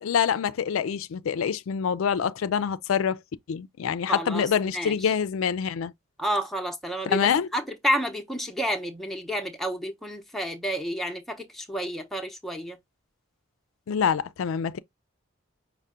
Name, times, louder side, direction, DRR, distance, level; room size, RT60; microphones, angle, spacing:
voice 1, 0.0-3.2 3.5-5.9 7.1-7.5 13.9-14.8, left 7 dB, 80° left, 0.4 m, -26 dB
voice 2, 4.1-5.1 6.2-12.8, equal, ahead, 0.7 m, -30 dB
5.5 x 2.1 x 3.7 m
head